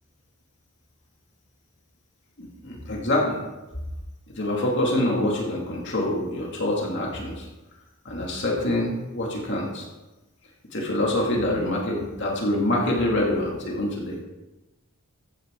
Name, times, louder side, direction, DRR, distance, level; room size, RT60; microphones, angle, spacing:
voice 1, 2.4-3.4 4.3-7.5 8.0-9.9 10.7-14.2, left 1 dB, 55° left, -2 dB, 2.4 m, -25 dB
15.0 x 9.1 x 3.8 m, 1.1 s
head